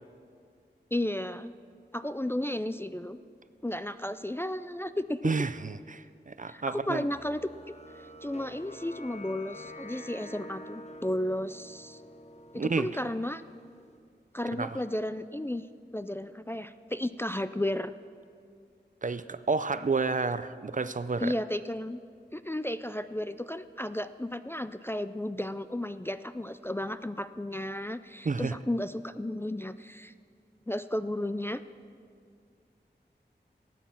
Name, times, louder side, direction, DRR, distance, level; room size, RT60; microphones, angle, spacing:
voice 1, 0.9-1.5 1.9-3.2 3.6-5.2 6.5-7.7 8.2-12.0 12.5-13.4 14.3-15.7 15.9-17.9 21.2-22.0 22.3-30.1 30.7-31.6, left 1 dB, 15° left, 12 dB, 0.3 m, -33 dB
voice 2, 5.2-7.0 12.6-12.9 14.6-14.7 19.0-21.3 28.3-28.6, right 4 dB, 45° right, 13 dB, 0.5 m, -30 dB
sound 1, 7.1-14.0, left 1 dB, 40° left, 0.8 m, -48 dB
13.5 x 9.3 x 7.4 m, 2.3 s
wide cardioid pair, 65°, 18 cm